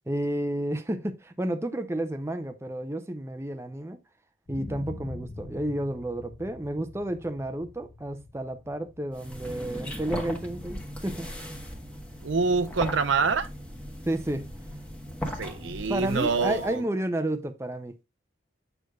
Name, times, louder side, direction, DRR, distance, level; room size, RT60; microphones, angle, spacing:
voice 1, 0.1-4.0 4.5-11.3 14.1-14.5 15.9-18.0, right 1 dB, 15° right, 0.5 m, -31 dB
sound 1, 4.5-12.3 12.8-12.9, left 2 dB, 50° left, 0.7 m, -45 dB
sound 2, 9.1-16.8, equal, 5° left, 1.1 m, -38 dB
voice 2, 12.2-13.5 15.4-16.8, right 4 dB, 80° right, 0.6 m, -26 dB
7.9 x 6.4 x 2.3 m
head